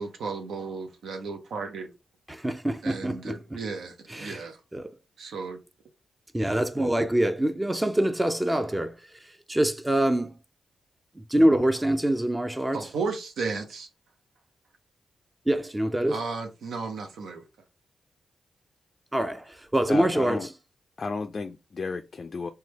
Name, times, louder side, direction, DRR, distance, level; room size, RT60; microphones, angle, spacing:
voice 1, 0.0-1.9 2.8-4.6 5.2-5.6 12.7-13.9 16.1-17.4, right 4 dB, 80° right, 0.5 m, -34 dB
voice 2, 2.3-3.4 4.1-4.9 6.3-10.4 11.2-12.9 15.5-16.2 19.1-20.5, right 1 dB, 20° right, 0.5 m, -25 dB
voice 3, 19.9-20.5 21.0-22.5, left 4 dB, 55° left, 0.3 m, -33 dB
3.1 x 2.2 x 2.9 m
supercardioid pair, 45°, 0 cm